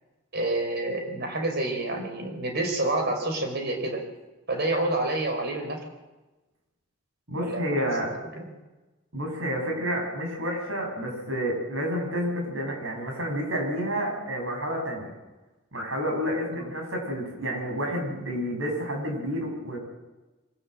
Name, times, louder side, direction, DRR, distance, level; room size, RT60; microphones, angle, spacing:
voice 1, 0.3-4.0 4.5-5.8 7.4-8.4 16.6-16.7, right 2 dB, 60° right, 4 dB, 5.1 m, -28 dB
voice 2, 7.3-8.1 9.1-15.1 15.7-19.8, equal, 85° right, 2 dB, 7.4 m, -29 dB
24.5 x 17.5 x 7.7 m, 1.1 s
head